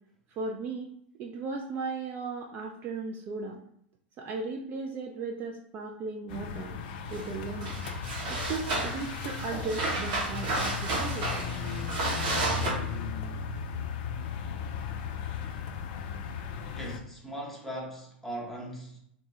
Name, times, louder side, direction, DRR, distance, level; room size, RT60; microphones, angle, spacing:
voice 1, 0.4-3.6 4.2-6.8 7.1-7.8 8.3-11.3, right 4 dB, 35° right, 1 dB, 0.4 m, -36 dB
sound 1, 6.3-17.0, left 7 dB, 50° left, 0.4 m, -36 dB
sound 2, 7.1-7.3 7.6-12.7, right 2 dB, 55° right, 0.9 m, -32 dB
Bass guitar, 7.7-11.3 11.9-12.4 12.8-14.9, left 2 dB, 80° right, 1.2 m, -46 dB
voice 2, 16.7-19.0, right 1 dB, 5° left, -3 dB, 0.8 m, -39 dB
3.0 x 2.1 x 2.8 m, 0.71 s
figure-of-eight pair, 90°, 6 cm